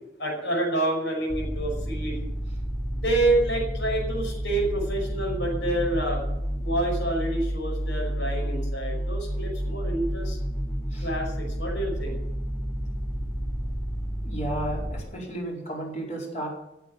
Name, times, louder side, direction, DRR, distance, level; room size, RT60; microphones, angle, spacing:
voice 1, 0.2-2.2 2.9-6.2 6.6-10.4 11.0-12.2, right 2 dB, 85° left, -2 dB, 5.9 m, -28 dB
sound 1, 1.3-15.0, equal, 15° left, 4.1 m, -30 dB
voice 2, 14.2-16.5, right 1 dB, 45° left, -2 dB, 4.8 m, -33 dB
15.5 x 7.8 x 8.5 m, 0.89 s
head